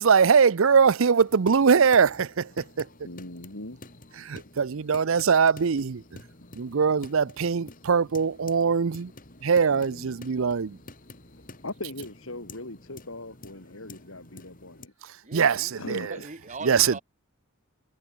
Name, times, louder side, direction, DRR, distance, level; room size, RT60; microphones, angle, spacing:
voice 1, 0.0-2.9 4.2-6.0 6.6-9.1 9.4-10.8 15.3-16.1 16.6-17.0, right 6 dB, 65° right, 0.6 m, -22 dB
sound 1, 1.1-14.9, left 2 dB, 40° left, 5.1 m, -49 dB
voice 2, 3.0-3.8 9.7-10.2 11.6-14.9 15.7-16.3, left 2 dB, 65° left, 3.8 m, -40 dB
voice 3, 15.2-17.0, right 3 dB, 35° right, 2.6 m, -41 dB
head